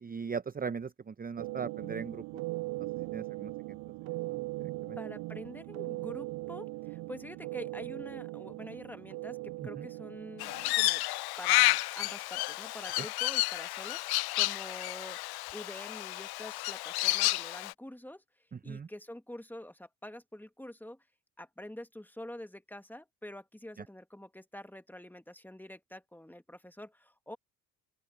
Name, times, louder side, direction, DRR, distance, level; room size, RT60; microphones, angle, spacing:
voice 1, 0.0-2.4 2.8-3.5 4.6-5.0 9.8-9.9 13.0-13.1 18.7-18.9, right 6 dB, 20° right, 0.7 m, -39 dB
sound 1, 1.4-10.7, right 22 dB, 65° right, 0.5 m, -39 dB
voice 2, 5.0-11.0 11.4-15.2 15.5-18.2 18.6-21.0 21.4-27.4, left 1 dB, 5° left, 2.0 m, -46 dB
Crow, 10.4-17.7, left 20 dB, 65° left, 0.6 m, -31 dB
open air
supercardioid pair, 65°, 41 cm